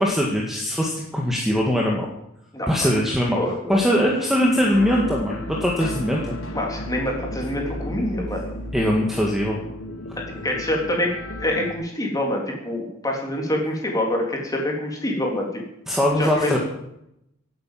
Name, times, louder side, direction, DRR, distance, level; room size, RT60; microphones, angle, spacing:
voice 1, 0.0-2.1 2.7-3.4 3.7-6.4 8.7-9.6 15.9-16.6, equal, ahead, -2 dB, 1.9 m, -21 dB
voice 2, 2.5-2.9 3.4-3.8 6.5-8.5 10.2-11.1 11.4-15.6 16.2-16.6, left 1 dB, 15° left, 0 dB, 3.6 m, -26 dB
sound 1, 4.4-11.7, left 1 dB, 65° left, 1.8 m, -34 dB
17.0 x 9.0 x 7.6 m, 0.80 s
head